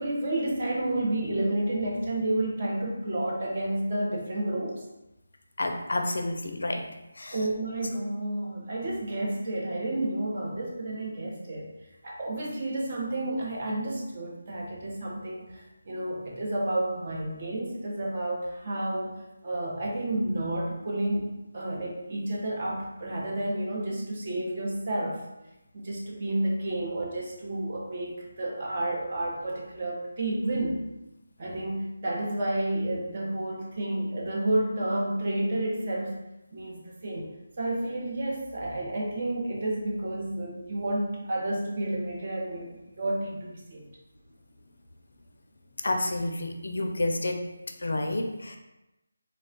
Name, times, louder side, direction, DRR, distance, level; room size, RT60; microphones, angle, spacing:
voice 1, 0.0-4.8 7.3-11.7 12.0-19.1 19.4-25.2 25.7-30.8 31.4-36.2 36.5-43.9, right 1 dB, 35° right, -3 dB, 0.7 m, -30 dB
voice 2, 5.6-6.8 7.1-7.4 45.8-47.4 47.8-48.6, left 2 dB, 70° left, 4 dB, 0.5 m, -29 dB
3.3 x 2.2 x 3.8 m, 0.96 s
figure-of-eight pair, 170°, 0 cm